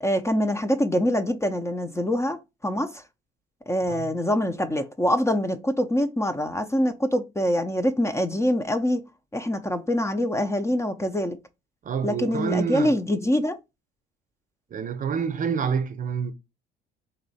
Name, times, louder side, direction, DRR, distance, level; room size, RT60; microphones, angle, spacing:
voice 1, 0.0-3.0 3.7-9.0 9.3-11.4 12.0-13.6, equal, 15° left, 0.6 m, -25 dB
voice 2, 11.8-12.9 14.7-16.3, right 6 dB, 40° right, 0.8 m, -27 dB
4.2 x 2.7 x 4.0 m
supercardioid pair, 90°, 21 cm